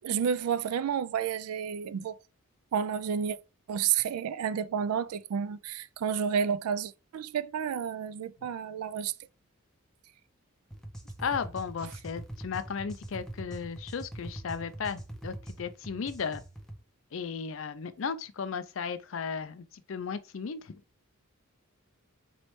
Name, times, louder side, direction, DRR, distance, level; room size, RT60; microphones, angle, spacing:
voice 1, 0.0-2.2 2.7-3.4 3.7-9.1, right 7 dB, 85° right, 0.3 m, -30 dB
sound 1, 10.7-16.8, right 1 dB, ahead, 0.6 m, -43 dB
voice 2, 11.2-16.4 17.1-20.8, left 6 dB, 60° left, 0.5 m, -35 dB
4.1 x 3.1 x 3.1 m
head